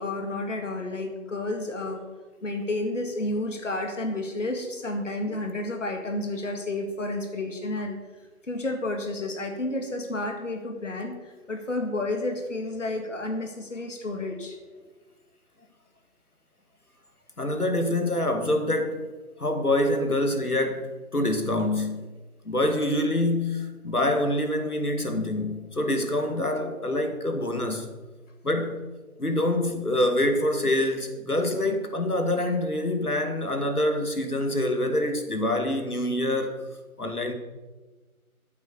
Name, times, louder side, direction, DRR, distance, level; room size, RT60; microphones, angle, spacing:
voice 1, 0.0-2.0 2.4-8.0 8.5-14.6, left 2 dB, 55° left, 2.1 m, -31 dB
voice 2, 17.4-19.1 19.4-22.1 22.4-27.9 28.4-28.9 29.2-36.6 37.0-37.3, left 1 dB, 80° left, 2.5 m, -26 dB
13.5 x 8.6 x 6.7 m
figure-of-eight pair, 155°, 44 cm